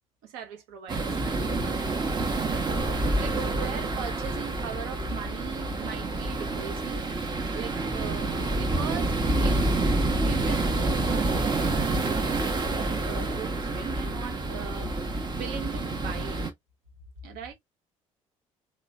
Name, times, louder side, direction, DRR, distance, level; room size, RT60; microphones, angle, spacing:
voice 1, 0.2-9.9 10.2-16.4 17.2-17.5, right 7 dB, 60° right, 1.0 m, -40 dB
sound 1, 0.9-16.5, right 2 dB, 25° right, 0.9 m, -28 dB
3.2 x 3.0 x 2.5 m
figure-of-eight pair, 50°, 17 cm